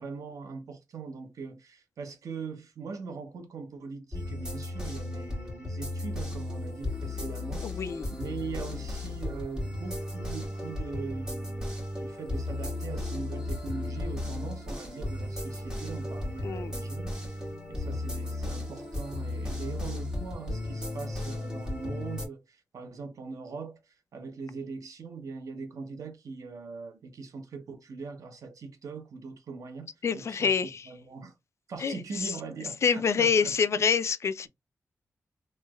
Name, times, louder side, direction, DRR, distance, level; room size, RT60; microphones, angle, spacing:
voice 1, 0.0-31.3 31.7-33.8, right 4 dB, 85° right, 0.8 m, -41 dB
sound 1, 4.1-22.3, left 1 dB, 10° right, 1.9 m, -35 dB
voice 2, 7.6-8.1 16.4-16.7 30.0-30.8 31.8-32.0 32.8-34.5, left 6 dB, 55° left, 0.3 m, -26 dB
3.2 x 3.0 x 2.2 m
wide cardioid pair, 115°, 6 cm